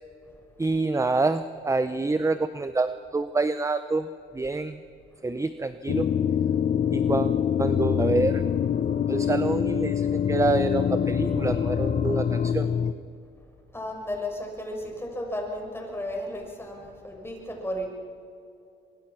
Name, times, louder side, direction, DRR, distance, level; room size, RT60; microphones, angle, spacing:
voice 1, 0.6-4.1 4.3-4.8 5.2-6.1 6.9-8.4 9.1-12.7, right 3 dB, 15° right, 11 dB, 0.8 m, -27 dB
sound 1, 5.9-12.9, left 8 dB, 45° left, 0.8 m, -25 dB
voice 2, 13.7-17.9, left 1 dB, 10° left, 1 dB, 6.2 m, -34 dB
24.0 x 22.5 x 6.1 m, 2.6 s
cardioid pair, 90°, 20 cm